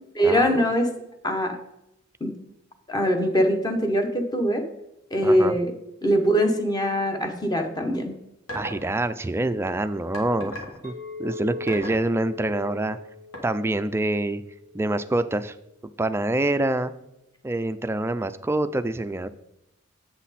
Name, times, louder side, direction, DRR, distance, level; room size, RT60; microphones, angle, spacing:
voice 1, 0.1-0.9 1.2-1.6 2.2-2.3 2.9-4.6 5.1-5.7 6.0-8.1, equal, 20° left, 5 dB, 1.0 m, -22 dB
voice 2, 5.2-5.6 8.5-10.6 10.8-10.9 11.2-13.0 13.4-14.4 14.7-15.6 16.0-16.9 17.4-19.3, right 2 dB, 10° right, 11 dB, 0.3 m, -26 dB
sound 1, 8.5-8.9 10.1-10.8 11.7-12.0 13.3-13.4, equal, 80° left, 1.9 m, -35 dB
Chink clink, 10.8-15.1, left 3 dB, 50° left, 1.9 m, -40 dB
8.1 x 5.9 x 4.1 m, 0.83 s
head